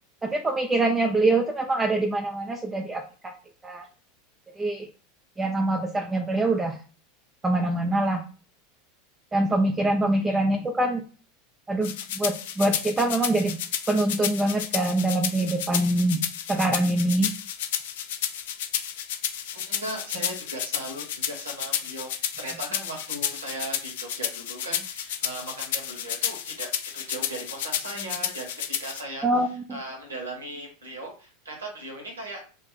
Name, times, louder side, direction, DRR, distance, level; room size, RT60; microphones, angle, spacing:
voice 1, 0.2-3.3 3.6-3.8 4.6-4.9 5.4-6.8 7.4-8.2 9.3-11.0 11.7-13.6 13.9-16.2 16.5-17.3 29.2-29.8, right 2 dB, 15° right, 2 dB, 0.4 m, -24 dB
sound 1, 11.8-29.0, left 9 dB, 65° left, 0.4 m, -31 dB
voice 2, 19.5-32.4, right 1 dB, 80° right, 1 dB, 1.1 m, -38 dB
2.5 x 2.2 x 3.8 m, 0.38 s
figure-of-eight pair, 80°, 0 cm